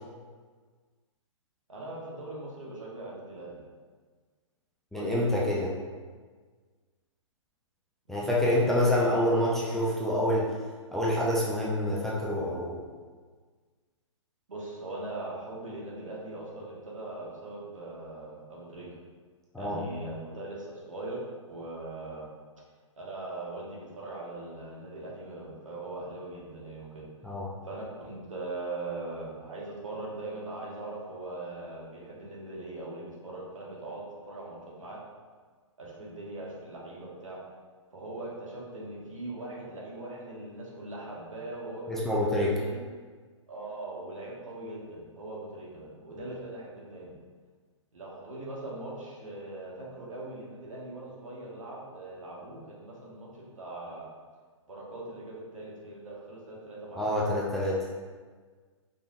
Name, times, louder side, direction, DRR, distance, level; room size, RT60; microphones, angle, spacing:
voice 1, 1.7-3.6 4.9-5.2 8.1-9.3 14.5-18.9 19.6-22.3 23.0-27.1 27.6-35.0 35.8-37.4 37.9-42.8 43.5-47.2 47.9-54.1 54.7-57.4, right 2 dB, 75° right, -5 dB, 1.4 m, -40 dB
voice 2, 4.9-5.7 8.1-10.5 10.9-12.8 19.5-19.8 27.2-27.5 41.9-42.5 57.0-57.8, left 1 dB, ahead, -7 dB, 0.5 m, -27 dB
5.0 x 3.5 x 2.4 m, 1.5 s
figure-of-eight pair, 120°, 17 cm